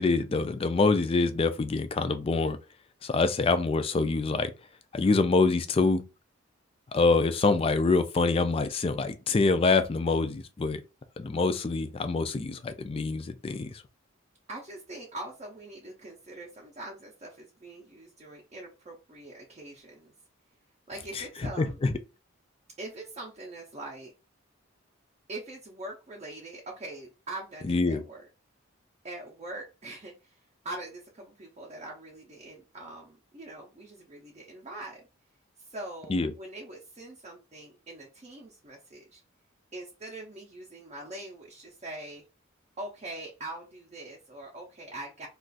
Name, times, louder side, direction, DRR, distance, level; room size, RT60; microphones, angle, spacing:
voice 1, 0.0-2.6 3.0-4.5 4.9-6.0 6.9-10.8 11.2-13.8 21.2-21.3 21.6-21.9 27.7-28.0 36.1-36.3, left 3 dB, 25° left, 0.3 m, -25 dB
voice 2, 14.5-20.1 20.9-21.9 22.8-24.1 25.3-28.3 29.0-35.0 35.6-39.2 39.7-42.2 42.8-45.3, right 2 dB, 30° right, 0.5 m, -43 dB
2.4 x 2.4 x 3.8 m
head